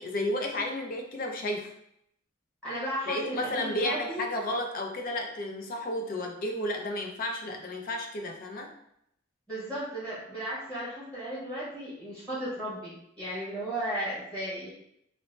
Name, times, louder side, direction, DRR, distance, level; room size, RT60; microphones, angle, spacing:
voice 1, 0.0-1.7 3.1-8.7, left 1 dB, 45° left, 2 dB, 0.4 m, -32 dB
voice 2, 2.6-4.2 9.5-14.7, right 1 dB, 5° left, -10 dB, 1.0 m, -35 dB
2.6 x 2.0 x 3.1 m, 0.74 s
head